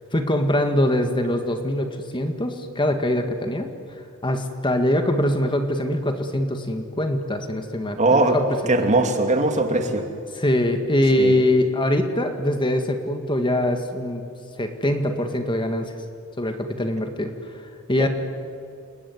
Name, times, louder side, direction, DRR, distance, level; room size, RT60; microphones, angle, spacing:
voice 1, 0.1-3.7 4.2-8.7 10.3-14.2 14.6-15.9 16.4-17.3 17.9-18.1, left 1 dB, 25° left, 6 dB, 1.9 m, -23 dB
voice 2, 8.0-8.4 8.7-10.0 11.2-11.3 18.0-18.1, right 2 dB, 35° right, 5 dB, 2.7 m, -20 dB
29.5 x 20.5 x 9.5 m, 2.4 s
head